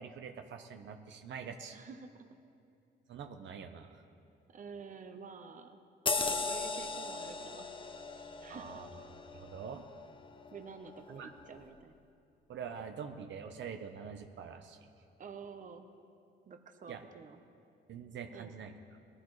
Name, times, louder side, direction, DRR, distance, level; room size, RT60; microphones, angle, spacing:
voice 1, 0.0-1.8 3.1-4.0 8.5-9.0 9.3-9.8 11.1-11.3 12.5-14.8 16.9-17.0 17.9-18.7, right 6 dB, 65° right, 5 dB, 0.9 m, -45 dB
voice 2, 1.7-2.3 4.5-5.8 6.2-7.7 8.4-8.9 10.5-12.0 15.2-15.9 16.5-17.4 18.3-18.5, right 5 dB, 40° right, 6 dB, 1.0 m, -49 dB
sound 1, 6.1-11.0 11.4-11.6, left 4 dB, 25° left, 0.8 m, -38 dB
20.0 x 14.5 x 3.2 m, 2.5 s
cardioid pair, 90°, 20 cm